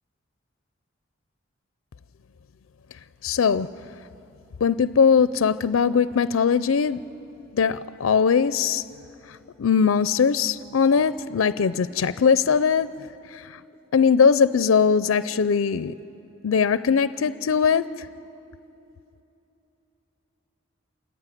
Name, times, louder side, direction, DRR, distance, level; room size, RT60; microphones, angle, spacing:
voice 1, 3.2-3.7 4.6-7.0 7.5-8.8 9.6-12.9 13.3-13.6 13.9-16.0 16.4-18.1, left 6 dB, 85° left, 0.4 m, -20 dB
26.5 x 14.5 x 9.9 m
head